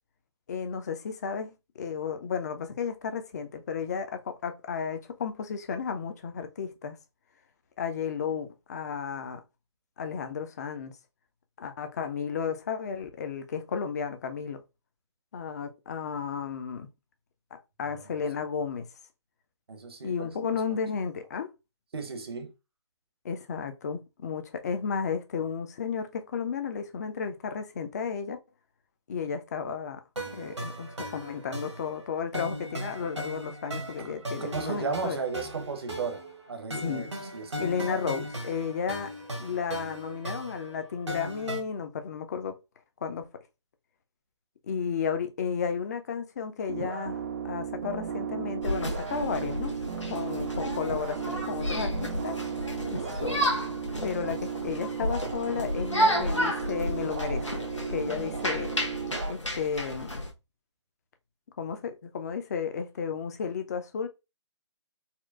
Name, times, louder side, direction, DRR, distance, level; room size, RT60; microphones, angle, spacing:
voice 1, 0.5-7.0 7.8-9.4 10.0-10.9 11.6-14.6 15.3-16.9 17.8-18.9 20.0-21.5 23.2-28.4 29.1-30.0 30.3-35.2 36.8-37.1 37.6-39.1 39.4-42.6 43.0-43.3 44.7-49.8 50.1-52.4 52.9-53.5 54.0-58.7 59.3-60.2 61.6-64.1, left 6 dB, 35° left, 0.5 m, -33 dB
voice 2, 19.7-20.5 21.9-22.5 34.5-36.2 36.5-38.0, right 5 dB, 55° right, 0.8 m, -35 dB
sound 1, 30.2-41.6, right 1 dB, 75° right, 1.1 m, -38 dB
sound 2, 46.7-59.3, right 7 dB, 35° right, 0.4 m, -35 dB
sound 3, 48.6-60.3, equal, 90° left, 0.9 m, -32 dB
4.2 x 2.1 x 2.3 m
figure-of-eight pair, 135°, 15 cm